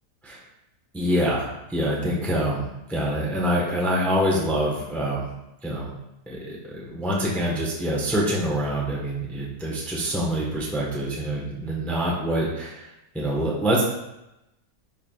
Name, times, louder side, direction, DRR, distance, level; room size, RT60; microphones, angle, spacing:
voice 1, 0.9-5.3 5.6-5.9 6.3-12.9 13.1-13.8, equal, ahead, -4 dB, 1.1 m, -25 dB
11.0 x 4.7 x 2.4 m, 0.91 s
omnidirectional pair, 1.6 m